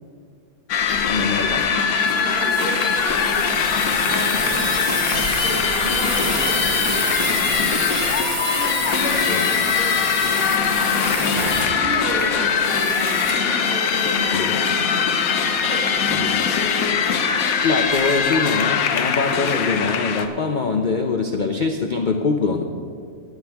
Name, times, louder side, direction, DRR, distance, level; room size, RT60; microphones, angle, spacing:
sound 1, 0.7-20.3, left 6 dB, 70° left, 1.2 m, -21 dB
voice 1, 1.1-1.6 9.3-9.5 14.3-14.6 16.1-16.3 17.6-22.6, left 4 dB, 55° left, 4 dB, 0.5 m, -23 dB
sound 2, 1.9-13.5, right 2 dB, 25° right, 1.0 m, -29 dB
voice 2, 2.1-3.6 3.9-4.9 5.3-8.0 8.4-11.0 11.7-15.1 15.7-16.2, right 1 dB, 55° right, -7 dB, 3.7 m, -32 dB
sound 3, 11.2-14.5 15.1-15.2, right 3 dB, 70° right, 1.6 m, -41 dB
17.0 x 9.3 x 3.5 m, 2.2 s
omnidirectional pair, 1.6 m